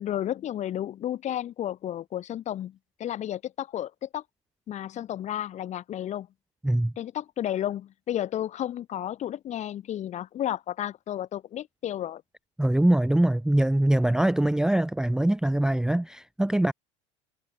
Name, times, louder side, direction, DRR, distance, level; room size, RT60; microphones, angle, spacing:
voice 1, 0.0-4.2 4.7-6.3 7.0-12.2, left 11 dB, 45° left, 4.6 m, -32 dB
voice 2, 12.6-16.7, right 1 dB, 5° right, 0.6 m, -23 dB
hypercardioid pair, 95°, 16 cm